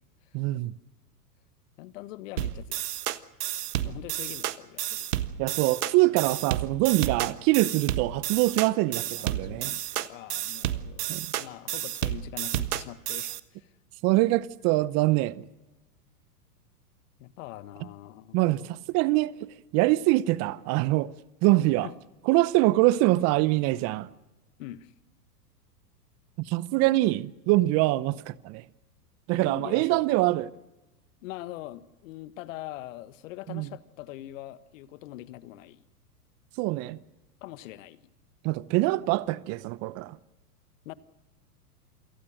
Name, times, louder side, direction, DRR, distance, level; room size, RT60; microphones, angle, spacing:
voice 1, 0.3-0.7 5.4-9.7 11.1-11.3 14.0-15.4 18.3-19.3 19.7-21.1 21.4-21.9 22.3-24.1 26.4-28.6 29.3-30.5 33.5-33.7 36.6-37.0 38.4-40.2, right 18 dB, 35° right, 0.8 m, -24 dB
voice 2, 1.8-2.8 3.8-5.1 8.9-13.7 17.2-18.7 21.8-21.9 24.6-24.9 29.3-30.2 31.2-35.8 37.4-38.0 40.8-40.9, left 15 dB, 55° left, 1.5 m, -43 dB
sound 1, 2.4-13.4, right 12 dB, 70° right, 1.4 m, -31 dB
28.0 x 18.5 x 6.4 m
hypercardioid pair, 110°, 47 cm